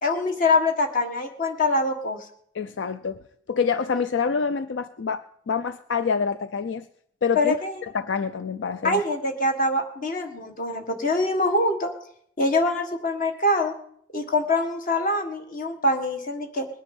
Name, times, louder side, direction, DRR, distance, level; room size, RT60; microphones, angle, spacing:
voice 1, 0.0-2.2 7.4-7.8 8.8-11.9 12.4-13.7 14.1-16.7, left 2 dB, 50° left, 5 dB, 1.7 m, -24 dB
voice 2, 2.5-3.2 3.5-6.9 7.2-7.6 7.9-9.0, left 5 dB, 80° left, 12 dB, 0.5 m, -26 dB
20.5 x 9.8 x 5.4 m, 0.68 s
head